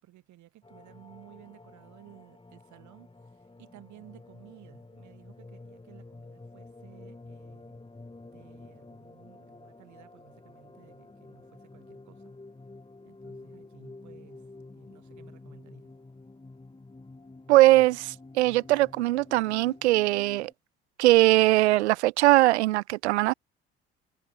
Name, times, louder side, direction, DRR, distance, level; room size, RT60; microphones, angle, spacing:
voice 1, 0.0-7.8 8.2-12.3 13.0-14.5 14.7-15.9, right 15 dB, 60° right, 7.0 m, -55 dB
sound 1, 0.6-20.5, left 2 dB, 15° left, 4.8 m, -49 dB
voice 2, 17.5-20.5 21.0-23.3, right 17 dB, 80° right, 0.5 m, -21 dB
figure-of-eight pair, 55°, 33 cm